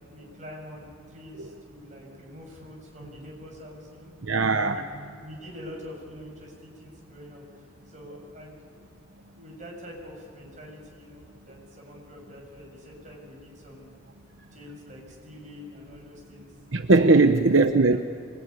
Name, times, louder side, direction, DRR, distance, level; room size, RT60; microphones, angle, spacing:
voice 1, 0.0-4.1 4.7-4.8 5.1-7.4 7.9-8.7 9.3-14.0 14.5-16.5 17.1-17.3 17.9-18.0, left 1 dB, 35° right, -1 dB, 7.4 m, -45 dB
voice 2, 4.2-5.1 16.7-18.0, right 3 dB, 75° right, 7 dB, 0.9 m, -20 dB
25.5 x 22.5 x 9.9 m, 2.2 s
head